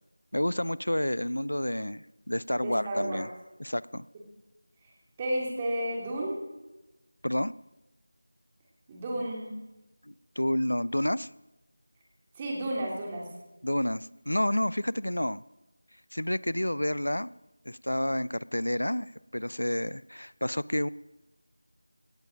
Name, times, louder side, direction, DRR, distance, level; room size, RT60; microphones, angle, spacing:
voice 1, 0.3-3.3 3.6-4.1 7.2-7.5 10.1-11.3 13.6-15.4 16.1-17.3 17.7-20.9, left 1 dB, 90° left, 20 dB, 0.5 m, -29 dB
voice 2, 2.6-3.2 5.2-6.4 8.9-9.5 12.3-13.3, right 1 dB, 15° right, -2 dB, 3.0 m, -32 dB
17.5 x 15.0 x 5.2 m, 1.0 s
figure-of-eight pair, 170°, 0 cm